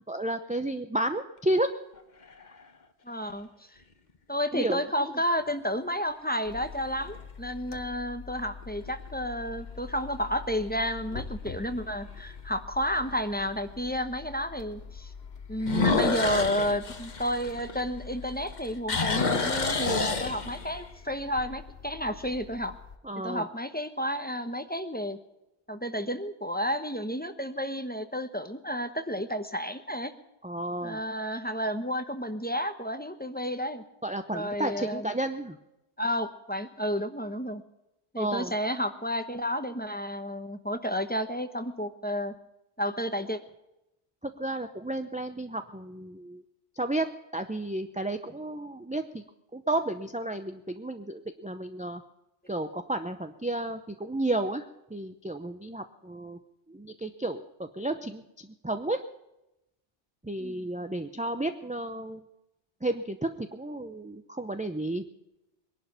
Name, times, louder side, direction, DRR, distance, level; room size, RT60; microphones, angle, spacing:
voice 1, 0.1-1.7 4.5-4.8 23.0-23.5 30.4-31.0 34.0-35.6 38.2-38.5 44.2-46.4 46.8-49.2 49.5-52.0 52.5-56.4 56.7-59.0 60.2-62.2 62.8-65.1, right 1 dB, 10° right, 8 dB, 0.5 m, -32 dB
sound 1, 2.0-2.6 3.3-3.4 8.6-9.1 9.6-9.7 10.2-10.3 10.6-10.7 12.2-12.3 15.6-18.1 18.5-20.8, left 4 dB, 45° left, 1.2 m, -28 dB
voice 2, 3.0-3.5 4.3-15.1 15.5-22.7 23.2-25.2 25.7-30.1 30.8-33.8 34.3-35.1 36.0-37.6 38.1-42.3 42.8-43.4 60.4-60.6, equal, 10° left, 8 dB, 0.9 m, -31 dB
sound 2, 6.4-23.0, left 6 dB, 65° left, 1.2 m, -45 dB
21.5 x 11.5 x 5.6 m, 0.91 s
omnidirectional pair, 1.1 m